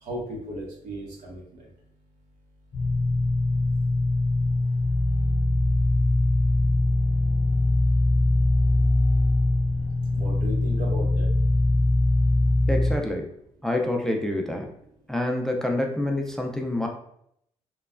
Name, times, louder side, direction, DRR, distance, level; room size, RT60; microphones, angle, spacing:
voice 1, 0.0-1.6 10.1-11.3, equal, 75° right, -2 dB, 0.9 m, -35 dB
sound 1, 2.7-12.9, left 2 dB, 50° left, 0.6 m, -22 dB
voice 2, 12.7-13.3 13.6-14.7 15.1-16.9, left 1 dB, 5° left, 2 dB, 0.3 m, -27 dB
3.1 x 2.2 x 2.4 m, 0.72 s
cardioid pair, 95°, 13 cm